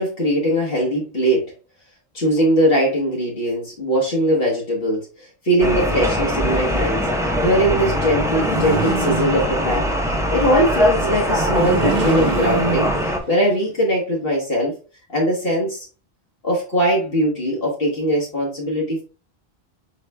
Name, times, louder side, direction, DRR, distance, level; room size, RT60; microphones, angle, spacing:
voice 1, 0.0-1.5 2.1-14.7 15.1-15.9 16.4-19.0, equal, 60° left, -4 dB, 1.5 m, -21 dB
sound 1, 5.6-13.2, equal, 5° right, 0.5 m, -22 dB
sound 2, 8.2-9.9 11.3-13.5, right 5 dB, 50° right, 0.7 m, -25 dB
4.9 x 4.7 x 2.2 m, 0.35 s
omnidirectional pair, 1.1 m